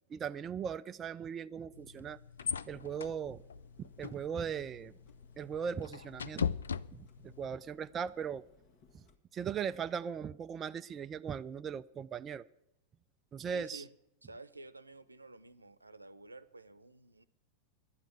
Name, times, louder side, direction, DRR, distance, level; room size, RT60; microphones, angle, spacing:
voice 1, 0.1-2.2 2.7-3.4 3.8-4.9 5.4-6.5 6.9-8.5 8.9-9.0 9.3-12.4 13.3-13.8, right 7 dB, 25° right, 11 dB, 0.4 m, -38 dB
sound 1, 1.7-7.5, left 7 dB, 70° left, 0.4 m, -40 dB
Clock, 2.4-9.2, left 4 dB, 45° left, 1.6 m, -65 dB
voice 2, 13.5-13.9 14.2-17.2, right 2 dB, 80° right, 13 dB, 0.7 m, -51 dB
11.5 x 9.1 x 8.7 m, 0.84 s
figure-of-eight pair, 90°, 0 cm